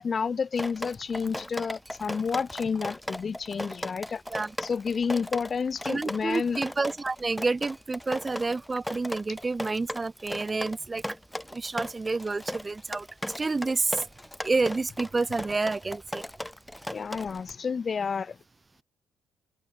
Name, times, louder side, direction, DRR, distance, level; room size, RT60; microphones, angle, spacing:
voice 1, 0.0-4.2 4.6-6.6 16.9-18.4, left 5 dB, 40° left, 1.3 m, -30 dB
Drip, 0.5-17.5, left 1 dB, 5° left, 1.1 m, -37 dB
voice 2, 5.9-11.0 11.5-13.1 13.4-14.0 14.4-16.3, right 3 dB, 25° right, 1.4 m, -29 dB
cardioid pair, 90°, 0 cm